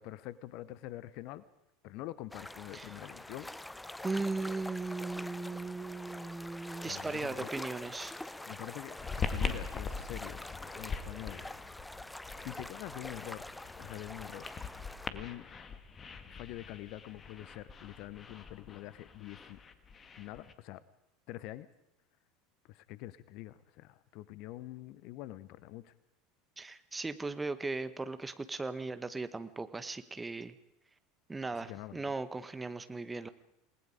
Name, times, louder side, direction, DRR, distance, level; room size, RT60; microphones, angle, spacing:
voice 1, 0.0-1.4 1.8-3.5 6.8-7.5 8.5-11.5 12.4-13.4 13.8-14.4 15.1-15.5 16.3-19.6 20.2-20.8 21.3-21.7 22.7-25.9 31.6-32.1, left 15 dB, 50° left, 18 dB, 0.9 m, -45 dB
sound 1, 2.3-15.1, left 1 dB, 5° left, 0.7 m, -45 dB
voice 2, 4.0-8.1 26.6-30.6 31.3-33.3, right 3 dB, 15° right, 12 dB, 1.3 m, -37 dB
sound 2, 9.0-20.5, left 5 dB, 30° left, 1.9 m, -42 dB
28.5 x 19.5 x 5.1 m, 0.82 s
figure-of-eight pair, 75°, 0 cm